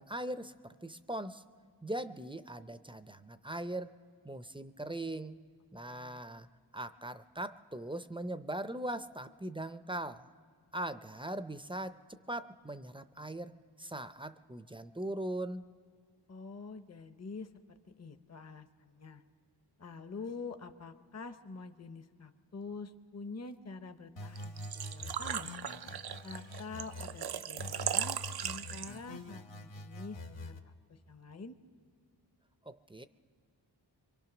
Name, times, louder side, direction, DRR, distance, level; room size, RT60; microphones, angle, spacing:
voice 1, 0.0-1.4 1.8-3.9 4.2-5.4 5.7-6.5 6.7-10.3 10.7-15.7 32.7-33.1, right 1 dB, 10° right, 11 dB, 0.5 m, -40 dB
voice 2, 5.9-6.2 16.3-19.2 19.8-25.5 26.2-31.6, left 4 dB, 35° left, 9 dB, 0.8 m, -46 dB
sound 1, 24.2-27.2 27.6-30.6, left 2 dB, 85° left, 1.2 m, -45 dB
Engine / Trickle dribble / Fill (with liquid), 24.4-29.2, right 9 dB, 60° right, 0.5 m, -38 dB
24.5 x 23.5 x 6.0 m, 2.1 s
wide cardioid pair, 100°, 44 cm